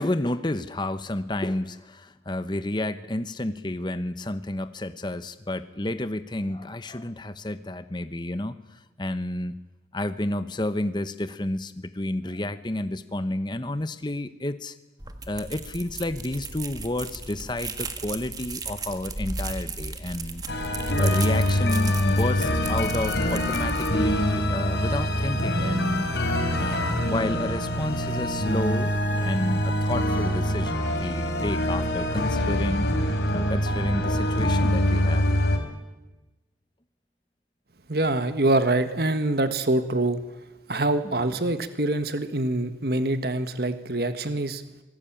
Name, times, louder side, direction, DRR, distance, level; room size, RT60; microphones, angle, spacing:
voice 1, 0.0-8.6 9.0-9.6 9.9-14.7 15.3-20.4 21.0-26.1 26.6-28.9 29.2-32.9 33.3-35.3 41.0-41.1, left 1 dB, 25° left, 11 dB, 1.0 m, -30 dB
sound 1, 15.0-24.4, right 3 dB, 20° right, 1.6 m, -36 dB
sound 2, 20.5-35.6, left 1 dB, 70° left, 4.2 m, -24 dB
voice 2, 37.9-40.2 40.7-44.8, right 2 dB, 60° right, 10 dB, 1.5 m, -25 dB
26.0 x 19.5 x 8.9 m, 1.1 s
head